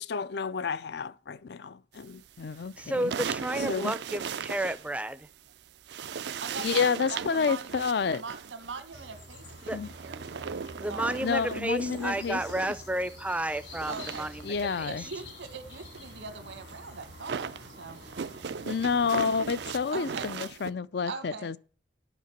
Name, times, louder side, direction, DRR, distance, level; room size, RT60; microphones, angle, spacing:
voice 1, 0.0-3.1 3.7-3.9 6.6-8.2 9.7-9.9 11.2-12.4 14.4-15.0 18.6-21.6, left 5 dB, 60° left, 0.4 m, -29 dB
sound 1, 2.3-5.5 5.8-13.1 13.4-20.7, right 6 dB, 60° right, 0.4 m, -38 dB
voice 2, 2.8-5.3 9.7-9.8 10.8-14.9, right 1 dB, 5° right, 0.5 m, -32 dB
voice 3, 6.4-9.7 10.0-10.6 10.9-11.2 13.9-14.3 14.8-18.0 18.9-19.1 19.9-20.3 21.1-21.6, right 4 dB, 85° right, 1.7 m, -41 dB
sound 2, 8.9-19.9, left 2 dB, 75° left, 3.3 m, -48 dB
10.5 x 5.8 x 7.2 m
head